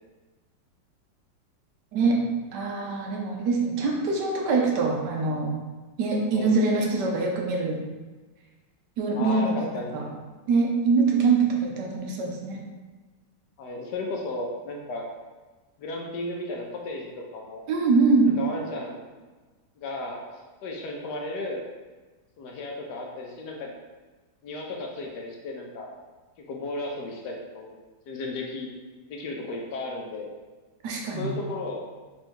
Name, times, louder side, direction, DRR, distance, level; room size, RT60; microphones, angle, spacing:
voice 1, 1.9-5.5 6.0-7.8 9.0-10.0 10.5-12.6 17.7-18.4 30.8-31.3, right 3 dB, 70° right, 0 dB, 1.2 m, -24 dB
voice 2, 9.1-10.0 13.6-15.1 15.8-17.6 18.2-19.0 19.8-20.2 20.6-21.6 22.4-23.7 24.4-25.9 26.5-27.8 28.1-28.7 29.1-30.3 31.1-31.9, left 2 dB, 70° left, 0 dB, 1.1 m, -34 dB
4.4 x 2.7 x 4.4 m, 1.3 s
omnidirectional pair, 2.0 m